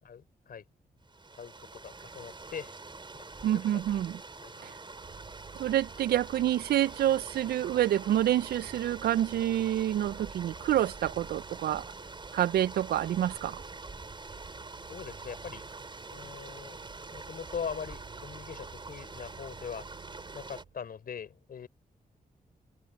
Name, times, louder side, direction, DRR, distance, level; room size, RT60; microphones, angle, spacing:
voice 1, 0.0-0.6 1.4-2.7 3.1-3.8 4.4-4.7 14.9-15.6 16.1-16.8 17.1-19.9 20.3-21.7, left 7 dB, 70° left, 4.8 m, -42 dB
sound 1, 1.0-20.6, right 3 dB, 30° right, 6.1 m, -45 dB
voice 2, 3.4-4.2 4.6-4.7 5.6-11.8 12.3-13.6, right 12 dB, 90° right, 0.4 m, -27 dB
Vehicle, 4.9-20.8, right 7 dB, 70° right, 3.6 m, -53 dB
cardioid pair, 90°, 16 cm